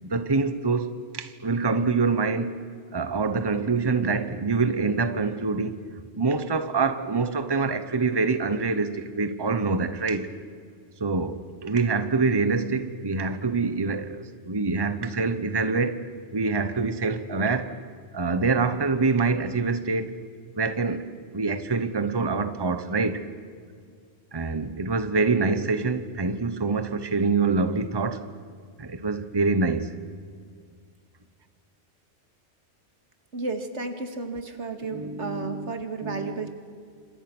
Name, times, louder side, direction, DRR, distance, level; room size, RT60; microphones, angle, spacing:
voice 1, 0.0-2.6 2.9-5.8 6.1-10.3 11.0-16.0 16.3-17.7 18.1-20.1 20.6-21.1 21.3-23.2 24.3-28.2 28.8-29.9 34.9-35.7 36.0-36.5, right 4 dB, 20° right, 1.1 m, -25 dB
voice 2, 33.3-36.5, right 3 dB, 80° right, 2.4 m, -33 dB
29.0 x 26.5 x 6.2 m
omnidirectional pair, 1.2 m